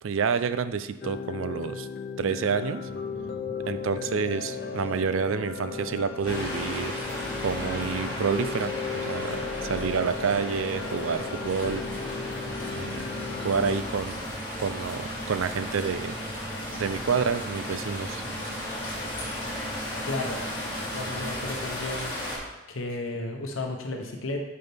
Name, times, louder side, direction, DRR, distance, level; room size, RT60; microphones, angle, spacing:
voice 1, 0.0-1.9 2.2-2.9 3.7-7.0 7.4-11.8 12.7-13.0 13.4-14.2 14.6-16.2 16.8-18.2, right 6 dB, 85° right, 12 dB, 0.5 m, -28 dB
sound 1, 1.0-13.8, left 6 dB, 50° left, 0.5 m, -36 dB
sound 2, 2.9-21.6, right 1 dB, 10° right, 0.7 m, -41 dB
sound 3, 6.2-22.4, left 1 dB, 25° left, 2.5 m, -35 dB
voice 2, 20.1-20.4 20.9-22.2 22.7-24.4, left 2 dB, 80° left, 3 dB, 0.9 m, -33 dB
9.5 x 5.6 x 3.5 m, 1.1 s
head